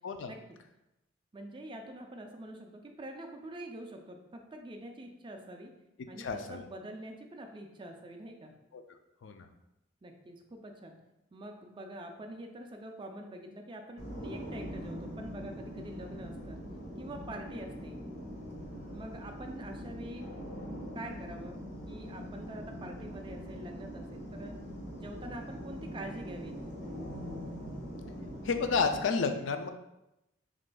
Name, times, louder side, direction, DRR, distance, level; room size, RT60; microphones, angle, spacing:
voice 1, 1.3-5.7 6.1-8.5 10.0-11.0 11.3-16.6 17.0-18.0 18.9-20.3 20.9-21.6 21.9-24.6 24.9-26.6, right 1 dB, 25° right, 4 dB, 0.4 m, -45 dB
voice 2, 6.2-6.6 8.7-8.8 9.2-9.5 28.4-29.7, left 5 dB, 80° left, 7 dB, 0.4 m, -31 dB
sound 1, 14.0-29.0, equal, 60° left, 1.1 m, -42 dB
6.2 x 2.6 x 2.2 m, 0.91 s
head